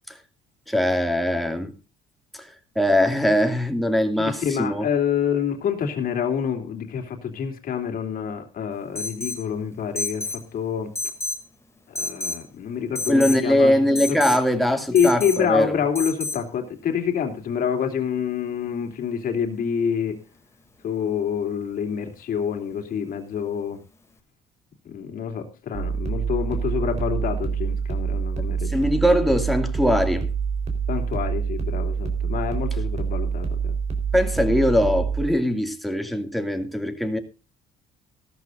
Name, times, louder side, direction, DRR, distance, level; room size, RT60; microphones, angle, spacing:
voice 1, 0.7-1.7 2.3-4.9 13.1-15.8 28.6-30.3 34.1-37.2, left 1 dB, ahead, 2.3 m, -21 dB
voice 2, 4.2-10.9 11.9-14.2 14.9-20.2 20.8-23.8 24.8-28.9 30.9-33.7, left 7 dB, 55° left, 3.0 m, -27 dB
Alarm, 9.0-9.4 10.0-10.4 11.0-11.4 12.0-12.4 13.0-13.4 14.0-14.4 15.0-15.4 16.0-16.4, left 3 dB, 15° left, 2.5 m, -30 dB
sound 1, 25.7-35.3, right 6 dB, 40° right, 4.0 m, -26 dB
16.5 x 13.5 x 2.6 m
cardioid pair, 110°, 17 cm